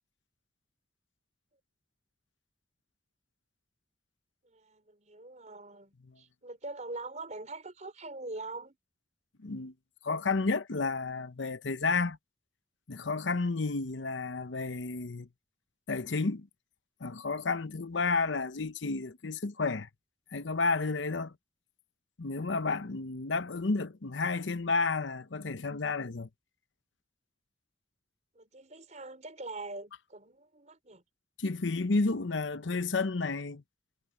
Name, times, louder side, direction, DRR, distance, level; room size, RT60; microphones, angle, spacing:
voice 1, 4.4-8.8 28.3-31.0, right 2 dB, 40° right, 4.6 m, -43 dB
voice 2, 9.4-9.7 10.0-12.2 12.9-15.3 15.9-16.5 17.0-19.9 20.3-21.3 22.2-26.3 31.4-33.6, left 3 dB, 90° left, 0.9 m, -31 dB
head